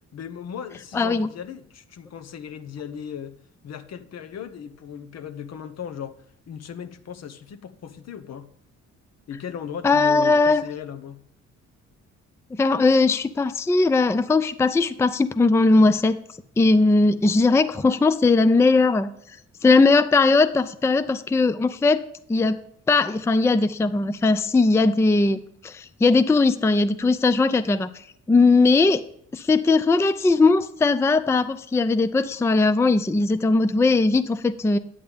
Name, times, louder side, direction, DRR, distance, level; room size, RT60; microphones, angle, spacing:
voice 1, 0.1-3.3 3.6-6.1 6.5-8.5 9.3-11.2, left 8 dB, 60° left, 0.9 m, -36 dB
voice 2, 0.9-1.3 9.8-10.6 12.5-16.2 16.6-19.1 19.6-22.0 22.3-22.6 22.9-27.9 28.3-29.0 29.3-34.8, left 3 dB, 10° left, 0.4 m, -19 dB
8.7 x 8.6 x 3.5 m
cardioid pair, 90°, 30 cm